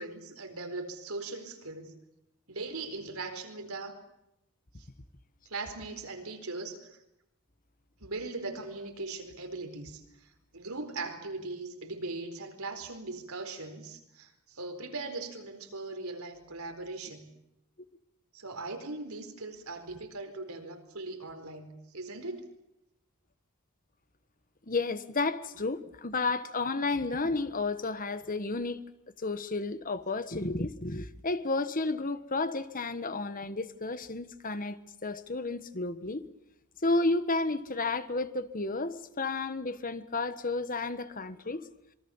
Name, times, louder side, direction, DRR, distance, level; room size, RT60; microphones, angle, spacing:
voice 1, 0.0-1.9 2.5-4.0 4.8-4.9 5.5-7.0 8.0-17.3 18.3-22.5, right 3 dB, 80° right, 4.5 m, -40 dB
voice 2, 24.7-28.8 29.2-36.2 36.8-41.6, left 3 dB, 40° left, 1.4 m, -32 dB
26.5 x 24.0 x 7.2 m
head